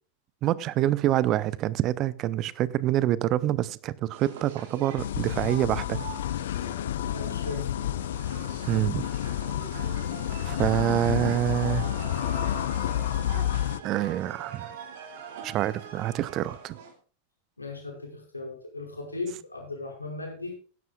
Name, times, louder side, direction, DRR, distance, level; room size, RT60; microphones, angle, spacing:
voice 1, 0.4-6.0 8.7-9.1 10.4-11.9 13.4-13.5 13.8-14.7 15.4-16.8, right 13 dB, 35° right, 0.6 m, -26 dB
sound 1, 4.1-16.9, right 6 dB, 55° right, 2.5 m, -43 dB
sound 2, 5.0-13.8, left 11 dB, 60° left, 0.4 m, -30 dB
voice 2, 7.1-7.8 17.6-20.6, left 3 dB, 80° left, 5.2 m, -37 dB
16.5 x 11.0 x 2.3 m
figure-of-eight pair, 90°, 0 cm